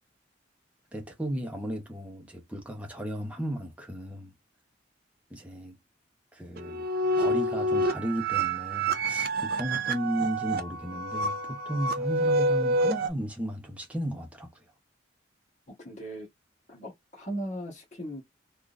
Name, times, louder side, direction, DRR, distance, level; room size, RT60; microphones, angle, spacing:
voice 1, 0.9-4.3 5.3-5.8 6.3-6.9 7.2-14.6, equal, 5° right, 0.8 m, -34 dB
sound 1, 6.6-13.1, right 1 dB, 50° right, 0.5 m, -28 dB
voice 2, 15.7-16.3 16.7-18.2, right 1 dB, 40° left, 1.2 m, -38 dB
3.6 x 2.4 x 2.5 m
head